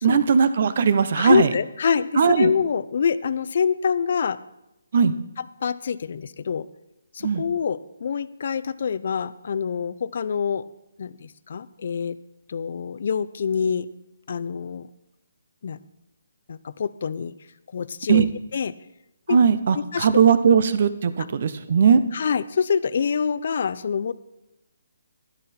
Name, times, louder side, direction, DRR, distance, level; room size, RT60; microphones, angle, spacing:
voice 1, 0.0-1.5 2.2-2.5 4.9-5.1 7.2-7.4 18.1-18.2 19.3-22.0, right 6 dB, 50° right, 13 dB, 0.8 m, -18 dB
voice 2, 1.1-4.4 5.6-6.7 7.1-10.6 11.0-12.2 12.5-13.9 14.3-14.9 15.6-15.8 16.5-17.3 17.7-18.3 18.5-18.7 19.3-19.4 19.7-20.2 22.1-24.1, left 6 dB, 55° left, 16 dB, 0.5 m, -25 dB
11.5 x 11.5 x 4.3 m, 0.89 s
hypercardioid pair, 160°, 0 cm